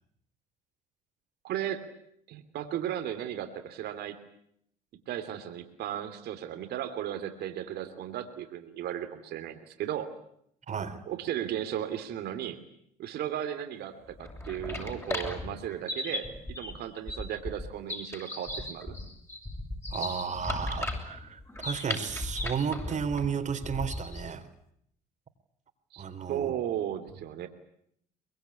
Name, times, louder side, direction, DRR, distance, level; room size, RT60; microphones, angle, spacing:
voice 1, 1.4-1.9 2.3-4.2 5.1-10.1 11.1-12.6 13.0-18.9 25.9-27.5, right 11 dB, 65° right, 8 dB, 2.9 m, -35 dB
voice 2, 10.7-11.0 19.9-24.5 26.0-26.5, right 6 dB, 45° right, 9 dB, 3.6 m, -33 dB
sound 1, 14.1-24.3, left 1 dB, 15° left, 7.0 m, -36 dB
23.5 x 22.0 x 9.8 m, 0.72 s
supercardioid pair, 75°, 18 cm